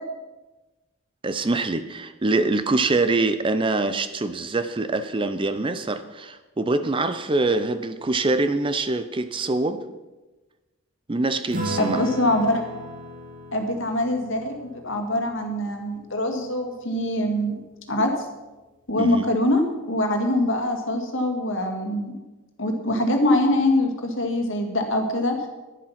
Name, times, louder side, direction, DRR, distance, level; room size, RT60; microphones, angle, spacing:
voice 1, 1.2-9.8 11.1-12.0 19.0-19.3, right 2 dB, 25° right, 11 dB, 0.5 m, -24 dB
Acoustic guitar / Strum, 11.5-16.3, equal, 40° right, 2.0 m, -35 dB
voice 2, 11.8-12.6 13.5-17.6 17.9-18.1 18.9-22.1 22.6-25.5, left 1 dB, 60° left, 4 dB, 2.1 m, -23 dB
11.5 x 10.5 x 5.8 m, 1.1 s
head